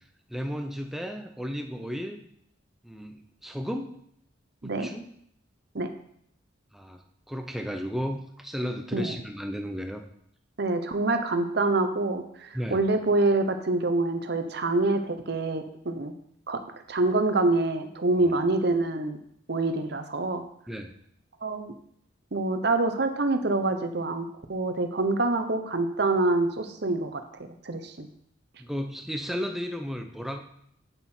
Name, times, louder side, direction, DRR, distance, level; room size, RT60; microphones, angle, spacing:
voice 1, 0.3-2.2 2.8-3.9 4.6-5.0 6.7-10.0 12.5-12.8 20.7-20.9 28.6-30.4, equal, ahead, 4 dB, 0.7 m, -34 dB
voice 2, 10.6-16.1 16.5-16.6 16.9-19.2 19.5-20.4 21.4-21.7 22.3-27.2 27.6-28.1, right 2 dB, 55° right, 7 dB, 0.9 m, -26 dB
8.2 x 7.4 x 4.5 m, 0.70 s
head